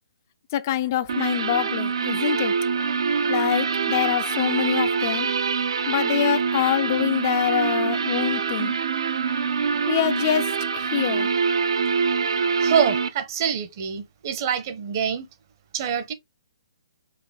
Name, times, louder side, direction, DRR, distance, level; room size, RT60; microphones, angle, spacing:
voice 1, 0.5-2.6 3.3-5.3 5.9-8.7 9.9-11.3, left 12 dB, 35° left, 0.4 m, -25 dB
sound 1, 1.1-13.1, right 5 dB, 70° right, 0.6 m, -24 dB
voice 2, 12.6-15.3 15.7-16.1, right 7 dB, 40° right, 0.9 m, -25 dB
5.1 x 2.6 x 3.4 m
hypercardioid pair, 150°, 3 cm